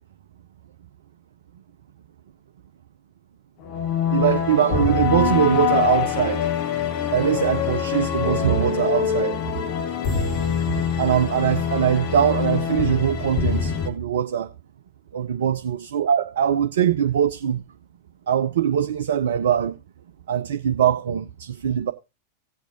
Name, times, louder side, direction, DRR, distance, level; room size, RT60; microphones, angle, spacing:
sound 1, 3.6-13.9, left 7 dB, 45° left, 1.8 m, -24 dB
voice 1, 4.1-6.5 7.1-9.4 10.7-14.5 15.1-17.6 18.3-19.8 20.3-21.9, right 9 dB, 60° right, 0.6 m, -22 dB
17.0 x 8.2 x 2.7 m
figure-of-eight pair, 90°, 0 cm